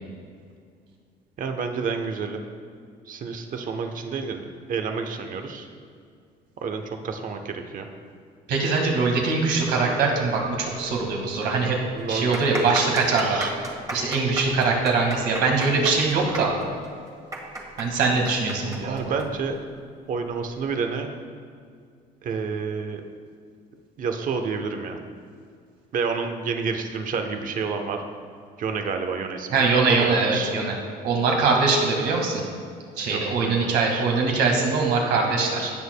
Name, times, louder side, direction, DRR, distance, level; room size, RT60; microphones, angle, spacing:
voice 1, 1.4-2.4 3.1-5.7 6.6-7.9 11.9-12.9 13.2-13.5 18.8-19.5 20.1-21.1 22.2-23.0 24.0-25.0 25.9-28.0 28.6-29.6 29.9-30.5 33.1-34.0, right 5 dB, 55° right, 5 dB, 0.9 m, -29 dB
voice 2, 8.5-11.8 12.1-13.5 13.9-16.5 17.8-19.0 29.5-30.7 31.0-32.4 33.0-35.7, right 4 dB, 80° right, 0 dB, 1.8 m, -22 dB
sound 1, 10.9-11.0 11.3-11.4 12.0-19.3 19.5-19.6 20.4-20.7, right 2 dB, 20° right, 1.5 m, -33 dB
17.0 x 6.6 x 2.2 m, 2.2 s
cardioid pair, 110°, 17 cm